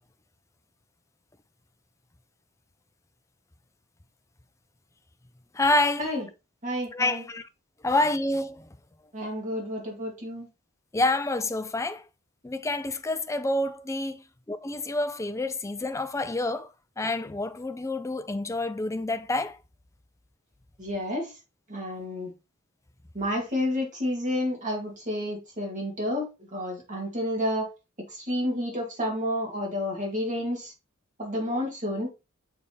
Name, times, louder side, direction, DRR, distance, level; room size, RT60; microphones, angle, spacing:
voice 1, 5.5-6.1 6.9-7.5 7.8-8.7 10.9-12.0 12.4-16.7 17.0-19.6, left 2 dB, 15° left, 0.4 m, -28 dB
voice 2, 6.6-7.2 9.1-10.5 20.8-21.3 21.7-22.3 23.1-27.7 28.1-30.7 31.2-32.1, left 1 dB, 35° right, 2.4 m, -30 dB
7.0 x 3.5 x 4.0 m
head